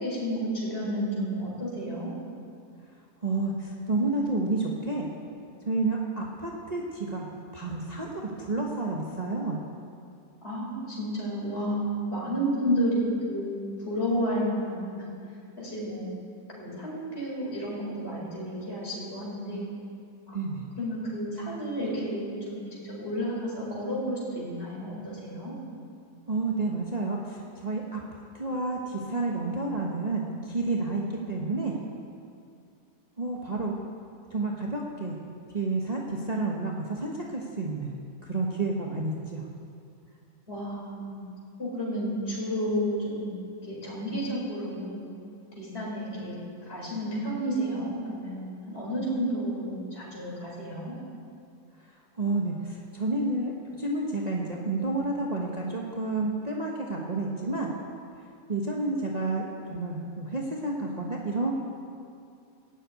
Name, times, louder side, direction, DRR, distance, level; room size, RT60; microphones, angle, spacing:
voice 1, 0.0-2.1 10.4-15.0 15.6-16.1 16.6-19.7 20.3-25.6 40.5-41.2 41.6-43.4 43.7-45.0 45.6-46.3 46.7-51.0, equal, 40° left, -6 dB, 5.4 m, -31 dB
voice 2, 3.2-5.1 5.6-7.3 7.5-9.6 20.3-20.7 26.3-28.0 28.3-31.0 31.3-31.7 33.2-33.8 34.3-35.1 35.5-37.9 38.2-39.4 52.2-53.5 53.8-57.7 58.5-61.5, right 2 dB, 30° right, -2 dB, 1.3 m, -30 dB
15.5 x 7.8 x 9.4 m, 2.4 s
omnidirectional pair, 1.6 m